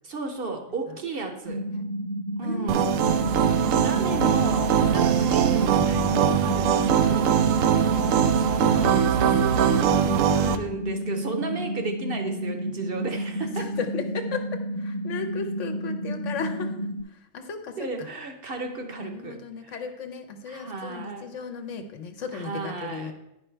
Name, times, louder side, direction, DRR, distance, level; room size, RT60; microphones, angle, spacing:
voice 1, 0.0-1.6 2.4-2.9 3.8-7.4 8.4-13.7 17.8-19.7 20.5-21.3 22.3-23.1, right 3 dB, 50° right, 5 dB, 0.9 m, -34 dB
sound 1, 1.4-17.0, equal, 20° left, 1.0 m, -31 dB
voice 2, 2.4-4.2 7.9-8.7 13.4-16.8 17.1-18.1 19.0-23.1, left 5 dB, 70° left, 7 dB, 1.1 m, -36 dB
sound 2, 2.7-10.6, right 8 dB, 85° right, 1.0 m, -21 dB
9.7 x 5.4 x 4.5 m, 0.88 s
omnidirectional pair, 1.3 m